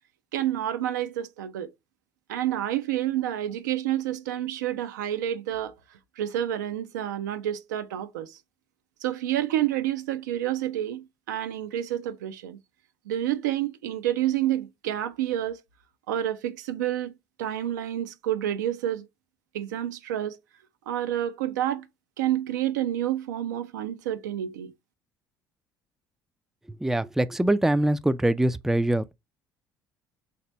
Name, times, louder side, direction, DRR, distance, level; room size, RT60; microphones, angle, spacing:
voice 1, 0.3-1.7 2.3-5.7 6.2-8.4 9.0-12.6 13.1-15.6 16.1-17.1 17.4-19.1 19.5-20.4 20.9-21.8 22.2-24.7, right 12 dB, 90° right, 0.4 m, -29 dB
voice 2, 26.8-29.1, right 1 dB, 5° right, 0.3 m, -23 dB
3.2 x 2.9 x 3.0 m
hypercardioid pair, 65°, 10 cm